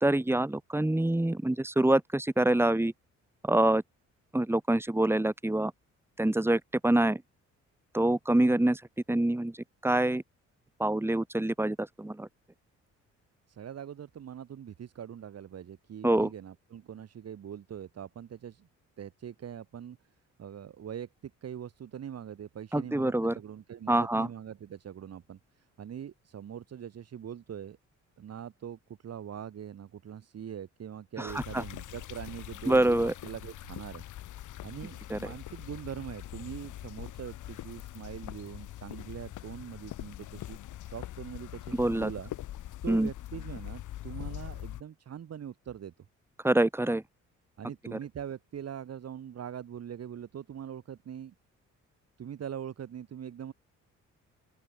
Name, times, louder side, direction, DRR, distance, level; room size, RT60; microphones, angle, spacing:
voice 1, 0.0-2.9 3.4-3.8 4.3-5.7 6.2-7.2 7.9-8.8 9.1-9.6 9.8-10.2 10.8-12.3 16.0-16.3 22.7-23.4 23.9-24.3 31.2-31.6 32.7-33.1 35.1-35.2 41.8-42.1 42.9-43.1 46.4-47.0 47.9-48.0, right 1 dB, 10° right, 2.3 m, -26 dB
voice 2, 13.5-18.7 19.0-20.0 20.4-27.8 28.2-34.0 34.6-40.6 40.9-42.3 42.8-45.9 47.6-51.3 52.2-53.5, right 9 dB, 55° right, 2.7 m, -42 dB
sound 1, 31.3-44.8, left 13 dB, 80° left, 3.4 m, -43 dB
open air
cardioid pair, 90°, 30 cm